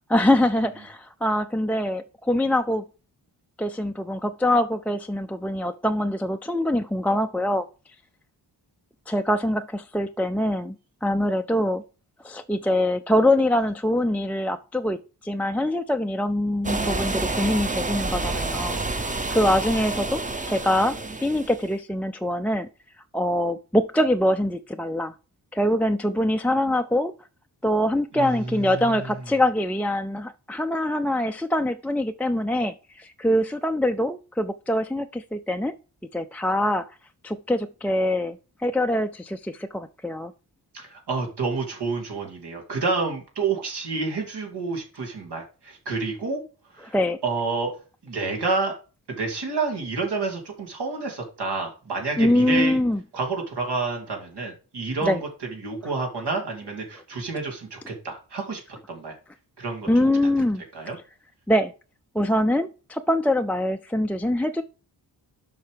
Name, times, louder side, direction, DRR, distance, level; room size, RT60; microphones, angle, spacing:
voice 1, 0.1-2.9 3.6-7.7 9.1-10.8 11.0-11.8 12.2-15.0 15.2-20.2 20.5-22.7 23.1-25.1 25.5-27.1 27.6-35.7 36.1-36.9 37.2-40.3 46.9-47.2 52.2-53.0 55.0-55.2 59.9-60.6 61.5-61.7 62.1-64.6, left 1 dB, 5° left, 0.3 m, -24 dB
sound 1, 16.6-21.7, right 2 dB, 20° right, 0.8 m, -29 dB
voice 2, 28.1-29.1 40.7-46.4 46.7-47.0 47.2-47.7 48.0-48.7 49.1-52.8 53.1-55.2 55.5-58.6 58.9-59.1 59.6-59.9 60.7-61.0, right 4 dB, 80° right, 2.8 m, -29 dB
7.3 x 5.8 x 5.1 m
wide cardioid pair, 140°, 40 cm